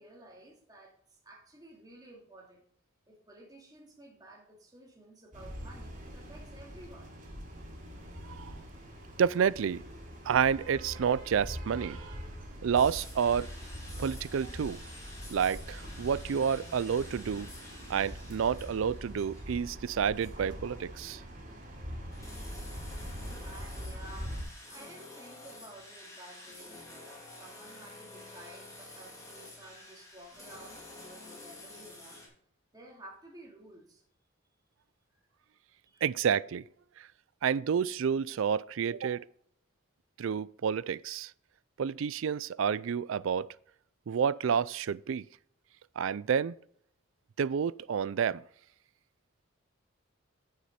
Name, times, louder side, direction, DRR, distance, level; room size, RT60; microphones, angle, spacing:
voice 1, 0.0-2.6 3.1-7.2 22.8-32.3 32.7-34.0 35.8-36.0, right 1 dB, 20° right, 2.3 m, -53 dB
sound 1, 5.3-24.4, equal, 40° right, 3.0 m, -43 dB
voice 2, 9.2-9.8 10.3-12.1 12.6-13.5 14.0-14.8 15.3-17.5 17.9-21.2 36.0-36.6 37.0-37.1 37.4-39.2 40.2-41.3 41.8-43.5 44.1-45.3 46.0-46.6 47.4-48.4, right 7 dB, 70° right, 0.4 m, -29 dB
sound 2, 12.7-19.9 20.2-20.3 21.3-32.3, left 2 dB, 15° left, 2.5 m, -50 dB
9.4 x 6.6 x 4.3 m
head